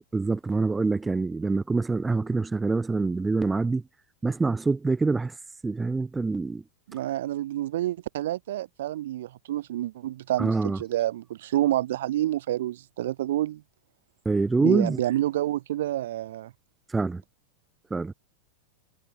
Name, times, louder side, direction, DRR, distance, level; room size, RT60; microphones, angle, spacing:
voice 1, 0.1-3.8 4.2-5.3 5.6-6.6 10.4-10.8 14.2-15.0 16.9-17.2 17.9-18.1, right 3 dB, 10° right, 0.8 m, -25 dB
voice 2, 6.9-13.6 14.6-16.5, right 13 dB, 55° right, 1.4 m, -28 dB
figure-of-eight pair, 90°, 0 cm